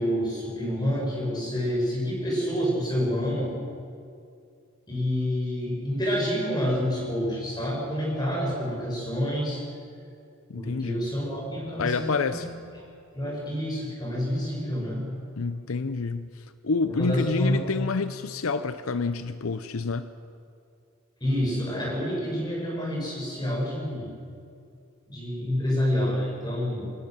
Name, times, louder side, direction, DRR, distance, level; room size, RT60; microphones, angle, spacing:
voice 1, 0.0-3.6 4.9-9.6 10.5-12.5 13.1-15.1 16.9-17.7 21.2-24.1 25.1-26.9, equal, 20° left, -4 dB, 7.4 m, -28 dB
voice 2, 10.5-11.0 11.8-12.5 15.4-20.1, left 4 dB, 80° left, 11 dB, 0.7 m, -28 dB
25.0 x 18.0 x 6.8 m, 2.4 s
head